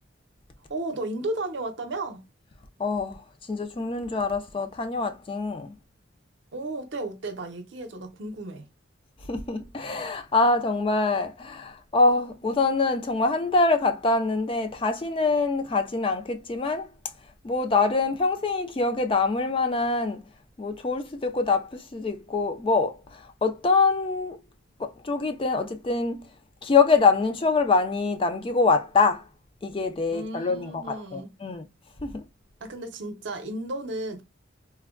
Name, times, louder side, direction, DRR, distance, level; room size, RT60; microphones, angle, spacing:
voice 1, 0.7-2.3 6.5-8.7 30.1-31.3 32.6-34.2, right 2 dB, 65° right, 0.6 m, -34 dB
voice 2, 2.8-5.7 9.2-16.9 17.2-20.3 20.6-24.4 24.8-26.3 26.6-29.3 29.6-31.7 32.0-32.3, left 3 dB, 25° left, 0.3 m, -25 dB
3.3 x 2.1 x 2.3 m
head